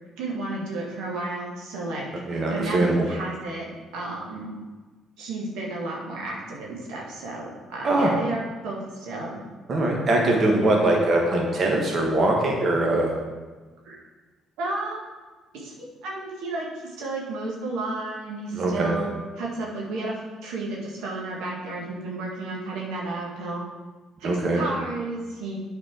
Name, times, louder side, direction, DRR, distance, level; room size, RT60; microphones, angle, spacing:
voice 1, 0.2-4.5 5.2-9.4 10.3-10.7 13.8-14.0 14.6-15.1 15.5-23.6 24.2-25.6, right 2 dB, 75° right, -3 dB, 1.6 m, -32 dB
voice 2, 2.3-2.9 7.8-8.1 9.7-13.1 18.5-18.9 24.2-24.6, right 2 dB, 50° right, -1 dB, 1.4 m, -22 dB
8.6 x 4.3 x 4.7 m, 1.3 s
hypercardioid pair, 60°, 0 cm